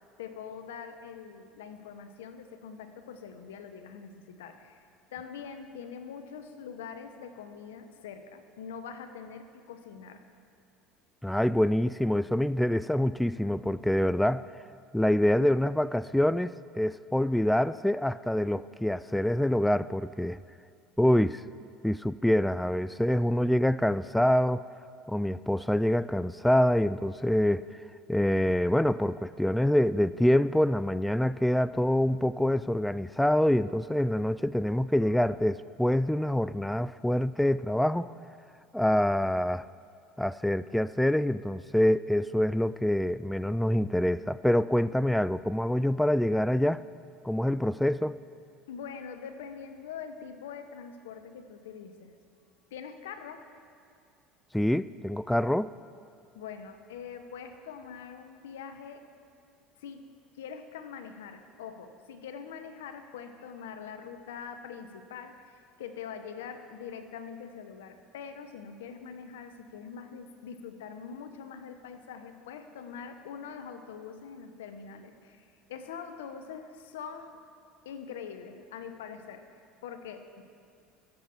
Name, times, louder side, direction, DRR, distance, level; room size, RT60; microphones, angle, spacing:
voice 1, 0.2-10.2 48.7-52.1 52.7-53.4 56.3-59.0 59.8-60.0 60.3-77.4 77.8-80.4, left 6 dB, 85° left, 1.0 m, -43 dB
voice 2, 11.2-14.4 14.9-20.4 21.0-21.4 21.8-24.6 25.1-27.7 28.1-38.1 38.7-39.7 40.2-46.8 47.2-48.2 54.5-55.7, left 1 dB, 5° left, 0.3 m, -26 dB
15.0 x 8.0 x 7.2 m
hypercardioid pair, 85°, 0 cm